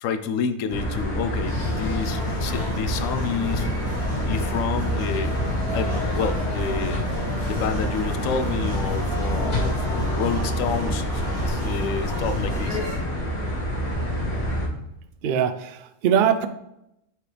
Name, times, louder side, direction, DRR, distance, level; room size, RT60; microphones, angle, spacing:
voice 1, 0.0-3.7 4.3-5.3 5.7-7.0 7.5-12.8, left 6 dB, 85° left, 9 dB, 1.0 m, -29 dB
sound 1, 0.7-14.7, equal, 50° left, 1.8 m, -27 dB
sound 2, 1.4-13.0, left 1 dB, 5° left, 2.3 m, -34 dB
Boom, 7.3-13.2, right 1 dB, 35° left, 2.2 m, -39 dB
voice 2, 15.2-16.5, right 8 dB, 65° right, 10 dB, 0.5 m, -22 dB
7.9 x 4.6 x 3.3 m, 0.84 s
omnidirectional pair, 1.3 m